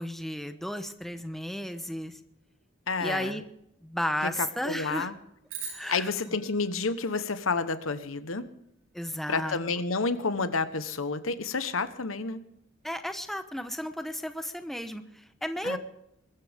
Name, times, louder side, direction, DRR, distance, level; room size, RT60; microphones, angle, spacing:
voice 1, 0.0-2.2 3.0-3.4 3.8-5.1 5.7-6.4 8.9-9.8 12.8-15.8, equal, ahead, 8 dB, 1.0 m, -34 dB
voice 2, 2.9-3.3 4.2-5.1 5.9-8.5 9.3-12.4 15.6-15.8, left 4 dB, 90° left, 12 dB, 1.2 m, -30 dB
sound 1, 5.5-7.9, right 6 dB, 75° right, 6.7 m, -44 dB
22.0 x 14.0 x 3.6 m, 0.78 s
head